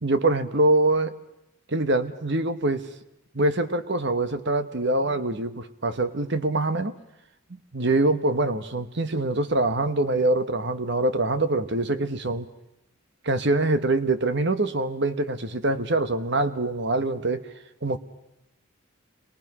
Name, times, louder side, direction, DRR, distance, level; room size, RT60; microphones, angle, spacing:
voice 1, 0.0-1.1 1.7-2.9 3.3-6.9 7.7-12.5 13.2-17.5 17.8-18.0, right 2 dB, 55° right, 11 dB, 1.3 m, -24 dB
28.5 x 22.5 x 6.2 m, 0.87 s
head